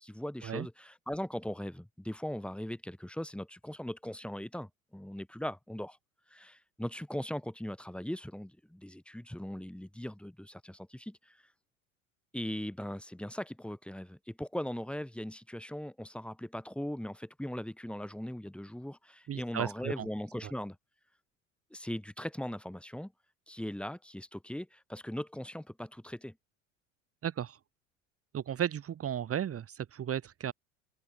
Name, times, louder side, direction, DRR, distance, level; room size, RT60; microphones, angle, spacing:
voice 1, 0.0-6.0 6.3-11.4 12.3-20.8 21.7-23.1 23.5-26.3, equal, 5° left, 5.7 m, -39 dB
voice 2, 19.3-20.1 20.4-20.5 27.2-27.6 28.3-30.5, right 9 dB, 35° right, 3.0 m, -35 dB
open air
hypercardioid pair, 70°, 39 cm